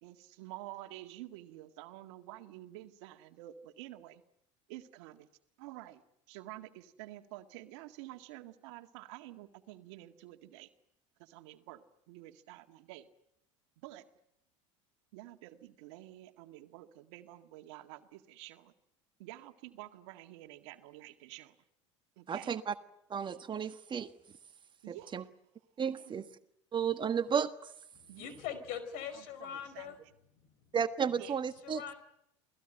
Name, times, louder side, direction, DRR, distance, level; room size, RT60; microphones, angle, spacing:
voice 1, 0.0-4.2 4.7-5.3 5.6-6.0 6.3-10.7 11.2-13.1 13.8-14.1 15.1-18.7 19.2-21.6 22.2-22.6 24.8-25.2 26.0-26.2 28.1-28.4 29.1-30.1 31.1-31.4, right 15 dB, 70° right, 7 dB, 1.9 m, -49 dB
voice 2, 22.3-22.7 23.1-24.1 24.9-25.2 25.8-26.3 26.7-27.5 30.7-31.8, right 7 dB, 30° right, 10 dB, 1.5 m, -33 dB
voice 3, 28.1-30.0 31.6-31.9, left 8 dB, 60° left, 12 dB, 5.1 m, -41 dB
28.5 x 19.0 x 9.0 m, 0.77 s
hypercardioid pair, 80°, 16 cm